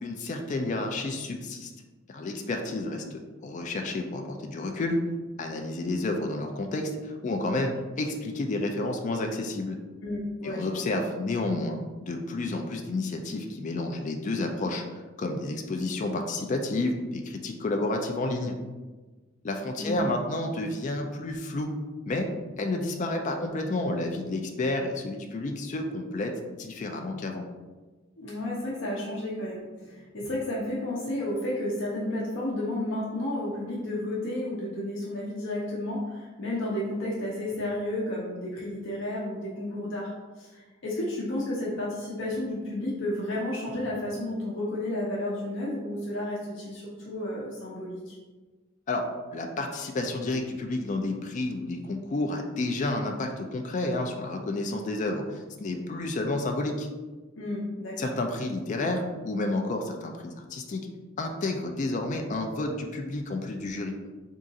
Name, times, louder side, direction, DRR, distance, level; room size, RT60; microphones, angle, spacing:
voice 1, 0.0-1.7 2.1-3.0 3.4-5.0 5.4-9.8 10.4-18.5 19.4-21.7 22.1-22.3 22.6-26.3 26.6-27.4 48.9-56.9 58.0-60.9 61.2-64.0, left 2 dB, 40° left, 3 dB, 0.3 m, -30 dB
voice 2, 10.0-10.8 19.8-20.0 28.2-48.2 57.4-58.1, left 1 dB, 65° left, -5 dB, 0.7 m, -32 dB
3.7 x 2.5 x 3.9 m, 1.3 s
head